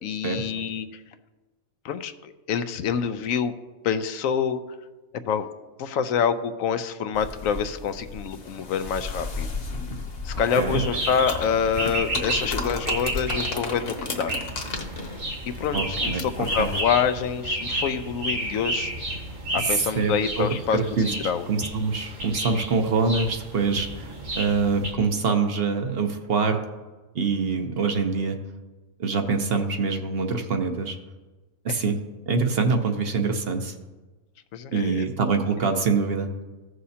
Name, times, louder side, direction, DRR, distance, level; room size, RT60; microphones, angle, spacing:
voice 1, 0.0-0.9 1.8-3.5 3.8-4.6 5.3-5.5 5.8-9.5 10.2-14.3 15.5-18.9 19.5-20.8 21.2-21.4 31.7-31.8 34.5-35.0, left 7 dB, 80° left, 11 dB, 1.0 m, -26 dB
sound 1, 7.1-16.8, left 3 dB, 45° left, 1.2 m, -34 dB
sound 2, 10.7-24.9, right 1 dB, 70° right, 2.3 m, -32 dB
voice 2, 15.7-16.2 16.6-16.7 19.6-20.5 20.7-26.6 27.1-28.4 29.0-31.0 31.6-32.0 32.3-33.7 34.7-36.3, right 4 dB, 55° right, 6 dB, 0.9 m, -25 dB
15.5 x 6.4 x 2.8 m, 1.2 s
omnidirectional pair, 1.4 m